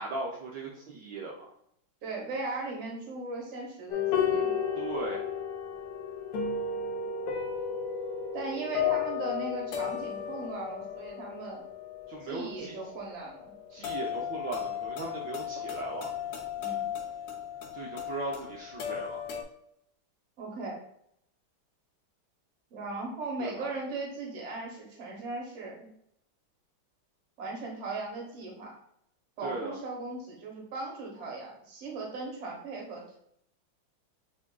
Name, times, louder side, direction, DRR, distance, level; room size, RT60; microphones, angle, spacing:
voice 1, 0.0-1.5 4.8-5.2 12.1-12.8 13.7-16.1 17.7-19.2 23.4-23.7 29.4-29.8, right 3 dB, 75° right, -1 dB, 1.2 m, -38 dB
voice 2, 2.0-4.5 8.3-11.6 12.2-13.5 16.6-16.8 20.4-20.8 22.7-25.9 27.4-28.7 29.4-33.2, right 3 dB, 45° right, -1 dB, 1.1 m, -38 dB
sound 1, 3.9-19.4, left 7 dB, 80° left, 1.5 m, -34 dB
7.0 x 2.5 x 2.2 m, 0.72 s
omnidirectional pair, 2.3 m